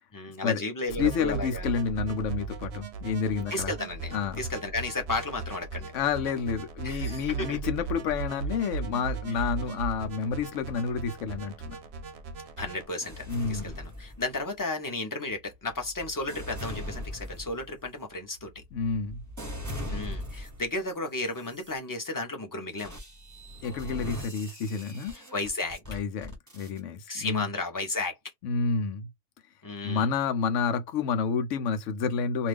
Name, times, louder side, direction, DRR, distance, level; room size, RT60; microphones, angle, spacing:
voice 1, 0.1-1.7 3.5-5.9 6.8-7.6 12.6-18.6 19.9-23.0 25.1-25.8 27.1-28.2 29.6-30.1, left 2 dB, 20° left, 0.7 m, -33 dB
sound 1, 0.9-12.9, right 5 dB, 65° right, 0.8 m, -37 dB
voice 2, 1.0-3.7 4.1-4.4 5.9-11.8 13.3-13.7 18.7-19.2 23.6-25.2 25.9-27.5 28.4-29.1 29.8-32.5, left 6 dB, 75° left, 1.0 m, -29 dB
sound 2, 13.0-14.6 15.3-20.8 21.3-21.7 22.8-26.8, left 1 dB, 15° right, 0.9 m, -40 dB
2.6 x 2.3 x 3.4 m
omnidirectional pair, 1.3 m